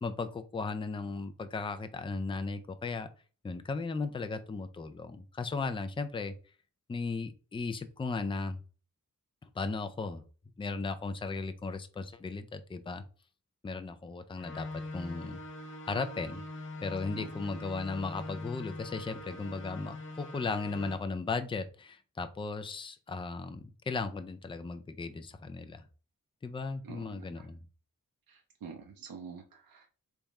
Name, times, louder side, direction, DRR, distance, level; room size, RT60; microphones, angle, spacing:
voice 1, 0.0-3.1 3.4-6.3 6.9-8.6 9.6-10.2 10.6-13.0 13.6-15.4 15.9-16.4 16.8-25.8 26.4-27.6, left 4 dB, 15° left, 9 dB, 0.4 m, -36 dB
sound 1, 14.4-21.0, left 2 dB, 35° left, 0.8 m, -43 dB
voice 2, 26.8-27.5 28.3-29.9, right 6 dB, 85° right, 3 dB, 0.7 m, -47 dB
3.5 x 3.5 x 4.1 m, 0.37 s
wide cardioid pair, 155°, 34 cm